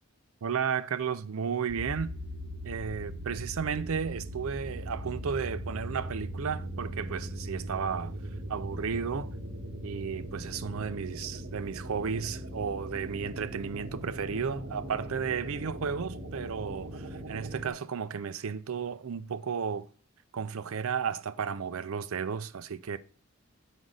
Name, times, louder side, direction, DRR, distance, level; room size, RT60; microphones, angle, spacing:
voice 1, 0.4-2.1 2.6-8.1 8.5-9.3 9.8-19.9 20.3-23.0, right 6 dB, 75° right, 0.5 m, -33 dB
sound 1, 1.7-17.7, right 1 dB, 55° right, 1.2 m, -39 dB
6.4 x 5.3 x 3.8 m
head